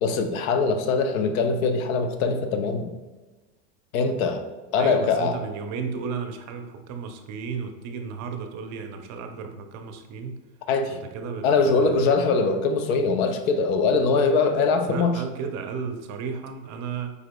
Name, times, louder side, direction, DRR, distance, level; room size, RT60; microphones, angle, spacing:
voice 1, 0.0-2.9 3.9-4.5 4.7-5.4 10.7-11.0 11.4-15.2, left 4 dB, 80° left, 7 dB, 0.7 m, -22 dB
voice 2, 4.8-10.4 10.9-12.1 14.9-17.1, right 5 dB, 45° right, 6 dB, 0.6 m, -34 dB
4.8 x 4.8 x 2.2 m, 1.2 s
supercardioid pair, 110°, 41 cm